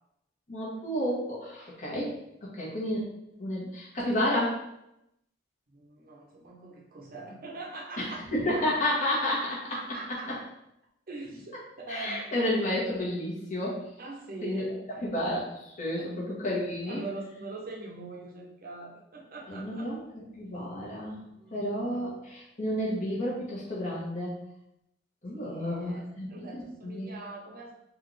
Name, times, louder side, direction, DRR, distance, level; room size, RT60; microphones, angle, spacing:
voice 1, 0.5-2.1 2.4-3.0 3.4-4.6 8.0-9.4 11.9-13.9 14.4-14.7 15.0-17.0 19.5-20.0 20.4-21.2 21.5-24.4 25.2-27.1, left 1 dB, 40° left, -5 dB, 1.2 m, -31 dB
voice 2, 5.7-8.3 8.5-8.6 9.1-9.2 9.5-10.3 11.1-12.4 14.0-15.0 15.9-16.1 16.9-19.9 21.3-22.0 25.3-27.7, right 3 dB, 50° right, -2 dB, 0.8 m, -43 dB
4.1 x 2.6 x 3.2 m, 0.82 s
head